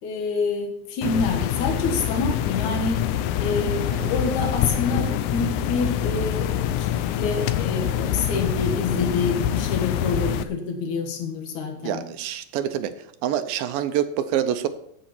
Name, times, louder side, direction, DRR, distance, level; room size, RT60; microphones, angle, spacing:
voice 1, 0.0-3.1 3.4-6.9 7.1-12.0, left 3 dB, 60° left, 3 dB, 2.8 m, -27 dB
sound 1, 1.0-10.4, left 11 dB, 85° left, 1.7 m, -25 dB
voice 2, 11.8-14.7, right 10 dB, 80° right, 11 dB, 2.4 m, -26 dB
15.5 x 6.3 x 4.4 m, 0.70 s
omnidirectional pair, 4.2 m